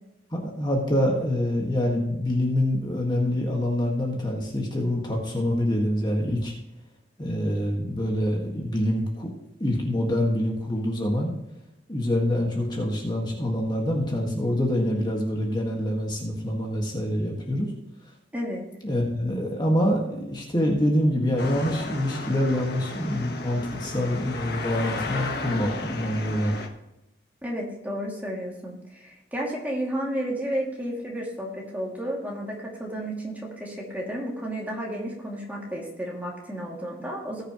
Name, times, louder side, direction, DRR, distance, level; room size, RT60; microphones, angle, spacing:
voice 1, 0.3-6.5 7.2-9.3 9.6-11.3 11.9-17.7 18.8-26.5, left 1 dB, 25° left, -1 dB, 1.7 m, -25 dB
voice 2, 18.3-18.6 27.4-37.4, equal, 10° right, -2 dB, 2.4 m, -32 dB
sound 1, 21.4-26.7, left 3 dB, 60° left, 1.4 m, -34 dB
19.0 x 6.7 x 3.1 m, 0.92 s
head